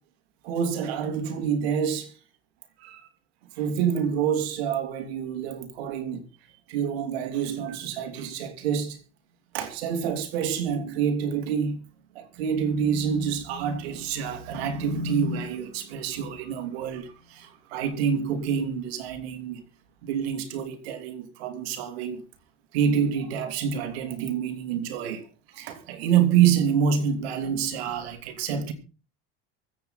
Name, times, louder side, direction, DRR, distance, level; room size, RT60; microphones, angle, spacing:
voice 1, 0.4-2.1 2.8-3.0 3.6-6.2 6.7-9.0 9.5-11.8 12.1-19.6 20.0-22.2 22.7-25.2 25.5-28.7, right 7 dB, 90° right, 2.8 m, -27 dB
24.0 x 8.4 x 4.1 m
supercardioid pair, 100°, 30 cm